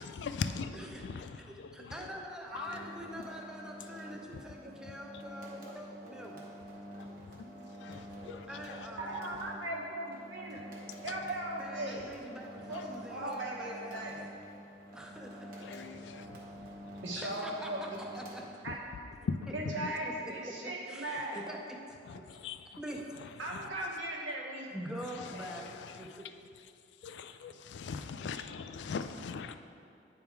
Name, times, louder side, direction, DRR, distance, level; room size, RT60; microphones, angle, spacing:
voice 1, 0.0-2.1 2.5-2.9 3.1-3.2 4.5-4.6 4.9-5.2 7.0-9.2 11.0-11.3 12.4-12.9 15.5-17.3 18.6-19.9 22.0-22.8 23.2-23.7 24.9-26.2 26.6-26.7 27.0-29.5, left 5 dB, 65° left, 0.3 m, -42 dB
voice 2, 1.5-6.4 8.5-9.1 11.6-14.2 14.9-15.6 17.2-17.7 18.1-18.4 20.0-21.6 22.1-22.2 22.8-23.0 24.7-26.3, equal, 5° right, 0.6 m, -45 dB
sound 1, 2.5-19.0, equal, 50° right, 1.1 m, -48 dB
voice 3, 2.5-2.8 7.4-7.5 8.1-8.7 9.0-10.6 11.0-12.1 12.7-14.2 17.0-18.1 18.6-18.8 19.5-21.4 23.4-24.7, right 1 dB, 90° right, 1.2 m, -38 dB
9.1 x 3.6 x 4.5 m
head